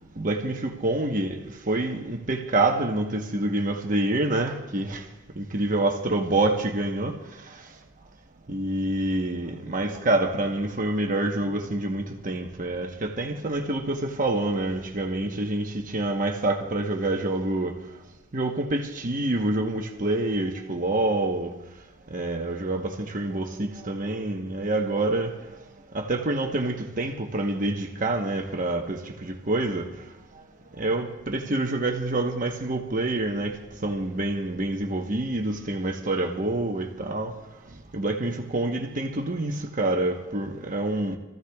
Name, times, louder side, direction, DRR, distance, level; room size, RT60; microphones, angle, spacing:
voice 1, 0.2-1.4 1.7-5.0 5.4-7.2 8.5-17.8 18.3-21.5 22.1-25.4 25.9-29.9 30.8-33.5 33.8-37.3 37.9-41.2, right 2 dB, 40° right, 1.1 m, -27 dB
27.0 x 14.5 x 2.3 m
head